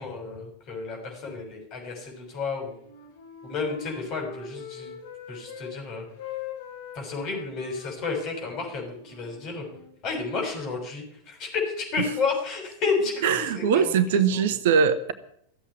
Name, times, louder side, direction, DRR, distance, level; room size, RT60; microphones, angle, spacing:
voice 1, 0.0-2.7 3.4-4.9 5.3-6.1 6.9-9.6 10.0-14.4, left 4 dB, 35° left, 2 dB, 6.6 m, -31 dB
Wind instrument woodwind instrument, 2.3-5.7 6.0-9.9, left 6 dB, 60° left, 6.7 m, -42 dB
voice 2, 13.2-15.1, right 7 dB, 55° right, 12 dB, 1.2 m, -21 dB
15.0 x 8.5 x 9.8 m, 0.67 s
figure-of-eight pair, 90°, 0 cm